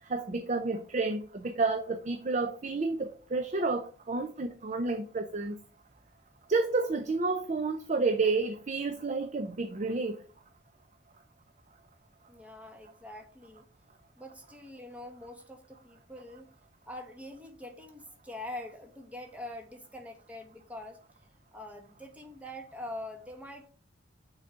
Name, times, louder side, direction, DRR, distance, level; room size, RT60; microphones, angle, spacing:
voice 1, 0.1-5.6 6.5-10.2, right 3 dB, 40° right, 0.6 m, -30 dB
voice 2, 12.3-13.7 14.2-16.5 16.9-21.0 21.5-23.7, left 1 dB, 10° right, 1.3 m, -44 dB
6.4 x 3.9 x 5.6 m
head